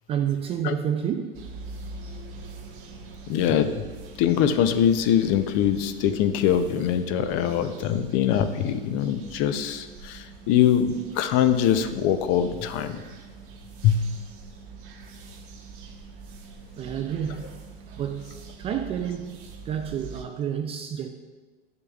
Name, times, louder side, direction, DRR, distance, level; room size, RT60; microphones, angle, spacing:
voice 1, 0.1-1.5 16.8-17.5 18.0-19.4 19.6-21.1, right 8 dB, 20° right, 0.3 m, -29 dB
sound 1, 1.3-20.3, right 4 dB, 60° right, 1.1 m, -44 dB
voice 2, 3.3-3.8 4.2-13.0 13.8-14.0, left 9 dB, 40° left, 0.6 m, -23 dB
10.0 x 6.7 x 2.4 m
hypercardioid pair, 110°, 30 cm